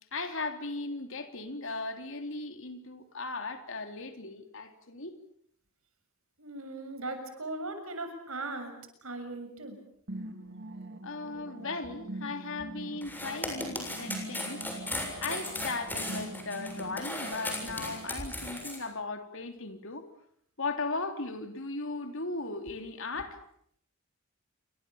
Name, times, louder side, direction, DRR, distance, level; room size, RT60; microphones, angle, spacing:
voice 1, 0.1-5.2 11.0-14.6 15.2-20.0 20.6-23.4, left 3 dB, 65° left, 7 dB, 3.6 m, -37 dB
voice 2, 6.4-8.7 9.0-9.8, right 2 dB, 75° right, 7 dB, 6.8 m, -38 dB
sound 1, 10.1-18.1, right 1 dB, 55° right, 3.0 m, -43 dB
sound 2, 13.0-18.8, left 1 dB, 10° left, 7.1 m, -36 dB
29.0 x 25.0 x 7.3 m, 0.68 s
head